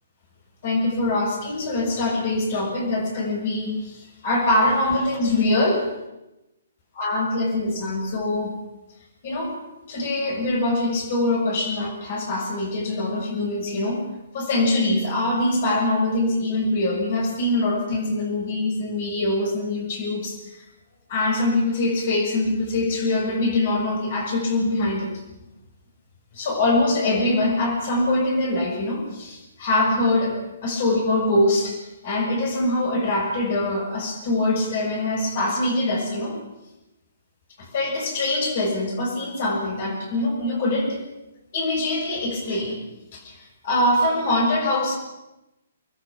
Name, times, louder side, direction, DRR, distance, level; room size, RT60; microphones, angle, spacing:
voice 1, 0.6-5.9 6.9-8.6 9.2-9.6 9.9-14.0 14.3-20.6 21.1-25.1 26.3-36.4 37.6-41.0 41.5-42.8 43.1-45.0, left 2 dB, 45° left, 0 dB, 6.5 m, -23 dB
25.5 x 20.0 x 6.2 m, 0.95 s
figure-of-eight pair, 125°, 0 cm